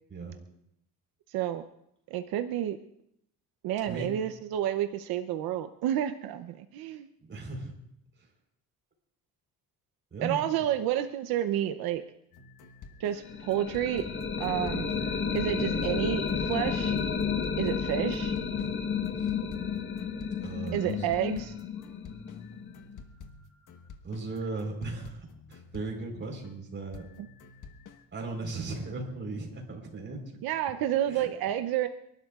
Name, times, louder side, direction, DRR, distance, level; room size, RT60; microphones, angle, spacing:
voice 1, 1.3-1.6 2.1-2.8 3.6-7.1 10.2-12.0 13.0-14.1 14.4-14.9 15.3-17.0 17.6-18.3 20.7-21.5 27.2-27.3 30.4-31.9, right 11 dB, 85° right, 8 dB, 0.8 m, -30 dB
voice 2, 7.3-7.7 10.1-10.4 19.2-19.3 20.4-21.1 24.0-27.0 28.1-30.2 31.1-31.3, right 3 dB, 35° right, 1 dB, 4.2 m, -37 dB
sound 1, 12.3-26.6 26.9-28.1, left 5 dB, 60° left, 1.4 m, -49 dB
sound 2, 13.2-23.0, left 6 dB, 35° left, 1.3 m, -32 dB
30.0 x 12.0 x 2.4 m, 0.76 s
cardioid pair, 110°, 35 cm